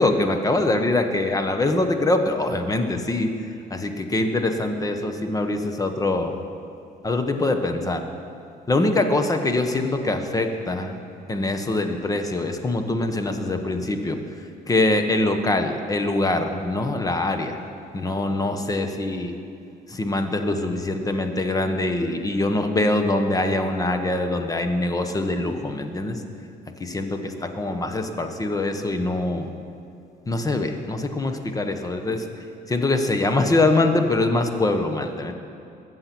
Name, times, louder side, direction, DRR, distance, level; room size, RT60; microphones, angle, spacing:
voice 1, 0.0-3.3 3.7-6.4 7.0-8.1 8.7-11.0 11.3-14.2 14.7-17.6 17.9-19.3 19.9-26.2 26.8-29.5 30.3-32.3 32.7-35.3, left 2 dB, 20° left, 6 dB, 1.2 m, -23 dB
21.5 x 7.8 x 6.1 m, 2.6 s
cardioid pair, 110°, 17 cm